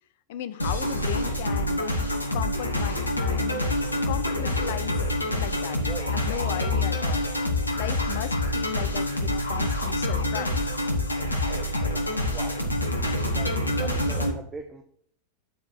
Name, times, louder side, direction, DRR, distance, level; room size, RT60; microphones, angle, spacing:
voice 1, 0.3-1.9 2.3-3.6 4.1-5.8 6.1-7.3 7.7-10.6, left 11 dB, 55° left, 13 dB, 0.6 m, -36 dB
sound 1, 0.6-14.3, left 1 dB, 80° left, 1.0 m, -26 dB
voice 2, 5.8-6.1 6.5-6.7 11.9-12.6 13.3-14.8, right 3 dB, 20° right, 6 dB, 0.8 m, -41 dB
8.2 x 4.6 x 5.8 m, 0.64 s
figure-of-eight pair, 90°, 0 cm